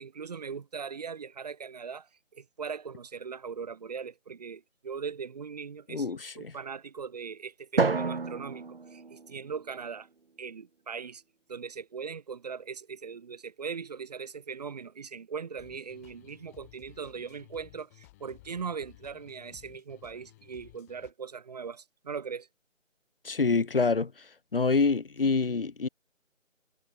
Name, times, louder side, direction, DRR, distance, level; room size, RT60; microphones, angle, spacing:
voice 1, 0.0-10.1 10.4-11.2 11.5-22.5, right 6 dB, 30° right, 4.6 m, -40 dB
voice 2, 5.9-6.5 23.2-24.1 24.5-25.9, left 4 dB, 45° left, 2.6 m, -26 dB
Drum, 7.8-10.1, right 4 dB, 50° right, 1.3 m, -30 dB
sound 1, 15.6-21.1, left 19 dB, 10° left, 4.1 m, -56 dB
figure-of-eight pair, 160°, 38 cm